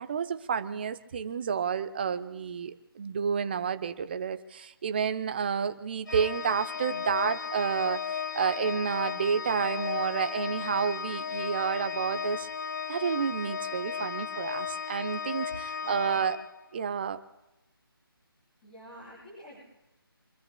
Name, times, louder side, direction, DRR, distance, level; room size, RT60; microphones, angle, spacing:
voice 1, 0.0-12.5 12.9-16.4 16.7-17.2, right 7 dB, 25° right, 11 dB, 0.7 m, -30 dB
Organ, 6.1-16.9, left 6 dB, 50° left, 0.7 m, -35 dB
voice 2, 15.8-16.3 18.6-19.6, equal, 20° left, -8 dB, 7.3 m, -49 dB
27.0 x 22.0 x 2.2 m, 0.98 s
figure-of-eight pair, 155°, 13 cm